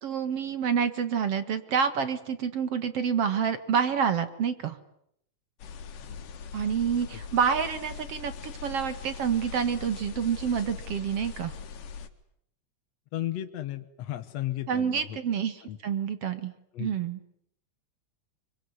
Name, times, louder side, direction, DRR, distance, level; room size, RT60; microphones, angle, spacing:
voice 1, 0.0-4.8 6.5-11.5 14.7-16.5 16.8-17.2, right 7 dB, 55° right, 11 dB, 2.3 m, -28 dB
sound 1, 5.6-12.1, left 6 dB, 85° left, 3.3 m, -41 dB
voice 2, 13.1-15.2 15.6-15.8 16.7-16.9, left 13 dB, 60° left, 8 dB, 2.2 m, -34 dB
25.5 x 24.5 x 9.6 m, 0.72 s
omnidirectional pair, 3.6 m